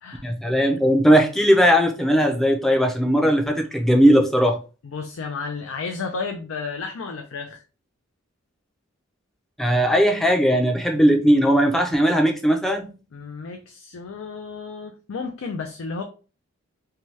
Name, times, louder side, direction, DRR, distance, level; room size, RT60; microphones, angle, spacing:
voice 1, 0.2-4.6 9.6-12.9, equal, ahead, 0.4 m, -18 dB
voice 2, 4.8-7.6 13.1-16.0, left 4 dB, 85° left, 0.4 m, -32 dB
2.8 x 2.2 x 3.1 m
head